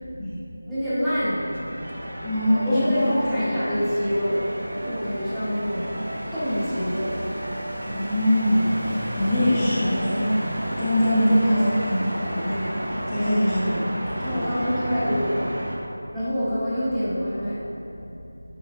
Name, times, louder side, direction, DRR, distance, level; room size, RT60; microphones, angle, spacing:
voice 1, 0.6-1.4 2.7-4.5 4.8-6.0 6.3-7.1 13.4-13.7 14.2-15.6 16.1-17.6, equal, ahead, -19 dB, 1.5 m, -26 dB
sound 1, 1.2-15.8, equal, 75° right, 1.1 m, -32 dB
voice 2, 2.2-3.5 7.9-10.3 10.8-14.5, equal, 15° left, -15 dB, 1.2 m, -23 dB
9.4 x 5.3 x 2.6 m, 2.8 s
figure-of-eight pair, 170°, 0 cm